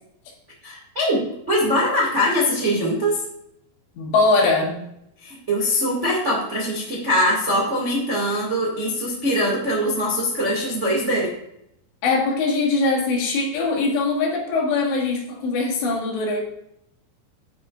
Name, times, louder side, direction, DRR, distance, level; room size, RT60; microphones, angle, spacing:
voice 1, 0.6-3.2 5.2-11.3, equal, 75° right, -4 dB, 0.6 m, -22 dB
voice 2, 4.0-4.9 12.0-16.4, left 3 dB, 70° left, -1 dB, 3.7 m, -21 dB
10.0 x 9.3 x 2.5 m, 0.77 s
omnidirectional pair, 5.7 m